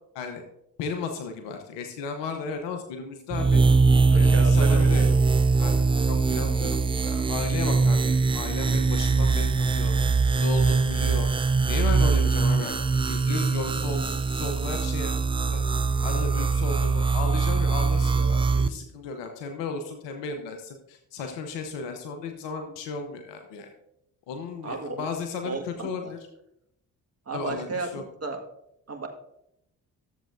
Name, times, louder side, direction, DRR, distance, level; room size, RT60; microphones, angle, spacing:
voice 1, 0.8-3.6 4.1-5.2 5.6-10.0 10.3-11.3 11.7-12.8 13.0-15.2 15.4-15.6 16.0-23.7 24.3-26.2 27.3-28.0, left 4 dB, 75° left, 5 dB, 1.0 m, -34 dB
sound 1, 3.3-18.7, right 4 dB, 15° right, 0.3 m, -22 dB
voice 2, 4.1-5.1 24.6-25.0 25.4-26.1 27.3-28.4 28.9-29.1, right 3 dB, 35° right, 3 dB, 1.7 m, -33 dB
13.5 x 7.4 x 2.6 m, 0.81 s
hypercardioid pair, 45°, 43 cm